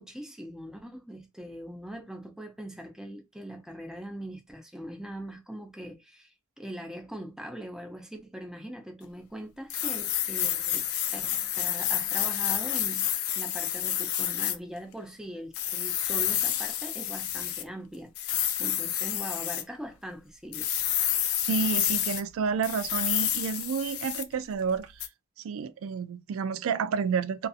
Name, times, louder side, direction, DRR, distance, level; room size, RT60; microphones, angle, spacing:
voice 1, 0.0-10.8 11.1-18.1 18.6-20.7, equal, 5° right, 0.5 m, -41 dB
sound 1, 9.7-14.6 15.5-17.6 18.1-19.6 20.5-22.2 22.6-24.3 25.0-25.1, left 11 dB, 75° left, 0.4 m, -29 dB
voice 2, 21.5-24.9 25.4-27.5, right 6 dB, 65° right, 0.3 m, -30 dB
2.5 x 2.5 x 2.4 m
head